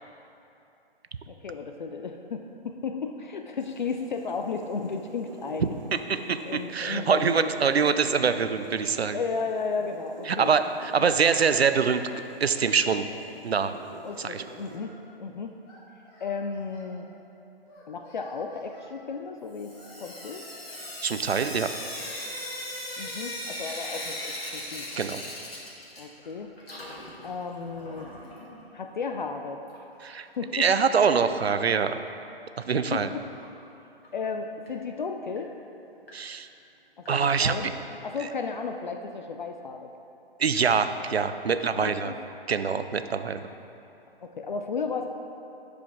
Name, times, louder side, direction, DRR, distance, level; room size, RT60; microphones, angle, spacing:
voice 1, 1.3-5.7 6.2-7.5 9.1-10.5 11.0-11.1 14.0-15.5 16.2-17.1 17.9-19.7 20.0-20.4 23.0-24.9 26.0-26.5 27.2-28.1 28.7-29.6 30.4-30.7 32.9-33.2 34.1-35.5 37.0-37.8 38.0-39.9 41.5-42.2 44.2-45.1, left 5 dB, 50° left, 5 dB, 0.5 m, -34 dB
sound 1, 3.6-14.8, right 3 dB, 45° right, 0.9 m, -47 dB
voice 2, 5.6-9.2 10.3-12.1 12.4-13.1 13.4-13.7 14.2-14.4 21.0-21.7 25.0-25.2 30.0-30.3 30.5-32.0 32.6-33.1 36.1-36.5 37.1-37.5 38.2-38.3 40.4-42.1 42.5-43.5, right 6 dB, 80° right, 10 dB, 0.5 m, -24 dB
Singing, 10.8-11.7 12.0-13.2 13.7-14.9 15.6-16.9 17.7-18.9 19.7-21.0 21.7-23.1, left 1 dB, 20° left, 1.7 m, -52 dB
Sink (filling or washing) / Drip, 19.5-26.3 26.6-28.5 29.7-29.8 30.1-30.2 30.4-30.5 33.4-33.5 34.0-34.1 34.7-34.8 35.4-35.5 36.1-36.2 37.0-37.1, left 1 dB, 70° left, 2.0 m, -38 dB
12.0 x 5.1 x 3.6 m, 2.8 s
figure-of-eight pair, 125°, 31 cm